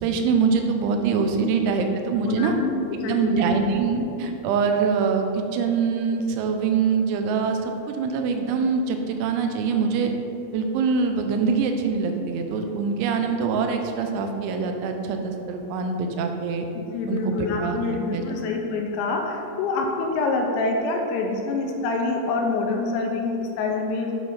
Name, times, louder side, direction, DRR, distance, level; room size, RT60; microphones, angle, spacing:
voice 1, 0.0-2.6 3.0-10.1 10.5-16.7 17.1-17.8 18.1-18.2, right 5 dB, 85° right, 5 dB, 3.0 m, -24 dB
voice 2, 2.0-3.5 16.8-24.1, left 3 dB, 85° left, 1 dB, 3.0 m, -26 dB
9.0 x 3.3 x 5.3 m, 2.7 s
omnidirectional pair, 5.3 m